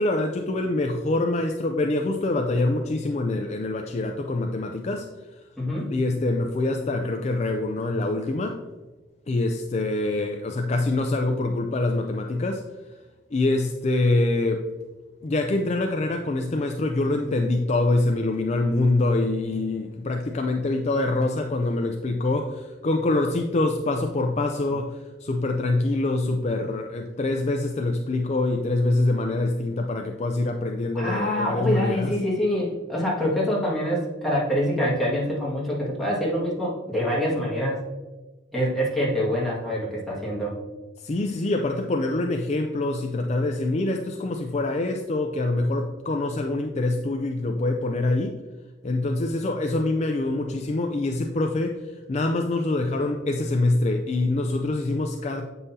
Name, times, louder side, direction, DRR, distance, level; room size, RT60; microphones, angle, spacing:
voice 1, 0.0-5.1 5.9-8.6 9.3-12.6 13.3-14.6 15.2-32.1 41.0-48.4 48.8-51.8 52.1-55.5, left 2 dB, 35° left, 4 dB, 0.4 m, -25 dB
voice 2, 5.6-5.9 30.9-37.8 38.5-40.6, equal, ahead, -7 dB, 1.9 m, -25 dB
8.0 x 5.5 x 2.8 m, 1.2 s
head